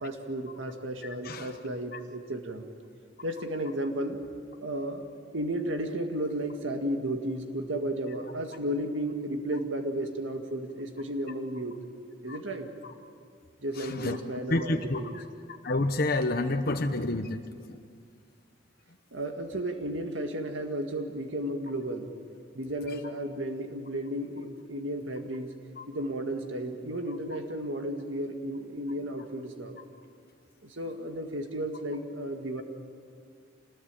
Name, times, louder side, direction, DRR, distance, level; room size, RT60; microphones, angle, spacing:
voice 1, 0.0-2.7 3.2-4.2 4.6-5.1 5.3-11.8 12.2-12.8 13.6-15.2 19.1-22.2 22.5-25.5 25.9-29.8 30.6-32.6, right 1 dB, 80° right, 4 dB, 1.9 m, -33 dB
voice 2, 13.8-14.2 14.5-15.2 15.6-17.4 17.7-17.8, left 2 dB, 50° left, 6 dB, 0.9 m, -29 dB
26.5 x 20.5 x 9.0 m, 2.2 s
head